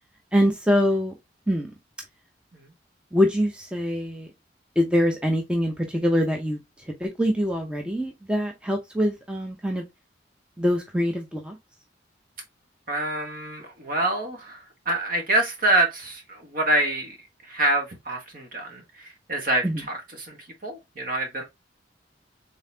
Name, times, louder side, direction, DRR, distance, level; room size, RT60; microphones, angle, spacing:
voice 1, 0.3-1.1 1.5-1.7 3.1-4.3 4.8-6.6 7.0-9.8 10.6-11.6 19.6-19.8, equal, 5° right, 0.6 m, -24 dB
voice 2, 12.9-17.2 17.4-21.4, right 2 dB, 50° right, 1.3 m, -26 dB
3.9 x 3.7 x 2.7 m
head